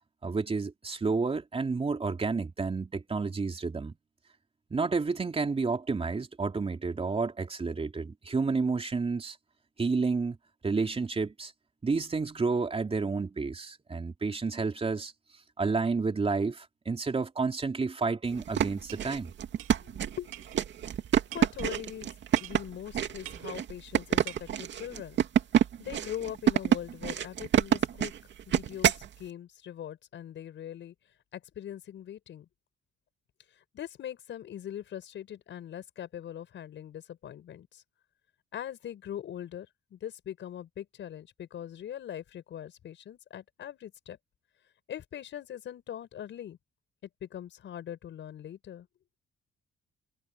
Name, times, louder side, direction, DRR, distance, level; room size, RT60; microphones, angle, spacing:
voice 1, 0.2-3.9 4.7-9.4 9.8-10.4 10.6-11.5 11.8-15.1 15.6-19.3, right 4 dB, 30° right, 3.6 m, -30 dB
sound 1, 18.3-29.1, right 9 dB, 65° right, 2.4 m, -27 dB
sound 2, 18.9-19.1 19.6-19.7 20.3-20.6 21.3-21.7 22.4-22.6 23.2-23.5 24.3-24.4, right 14 dB, 90° right, 2.2 m, -44 dB
voice 2, 19.8-20.3 21.3-22.1 22.4-25.2 25.8-28.1 28.5-30.9 31.3-32.5 33.7-37.8 38.5-44.2 44.9-46.6 47.2-48.9, left 10 dB, 70° left, 6.1 m, -41 dB
cardioid pair, 90°, 20 cm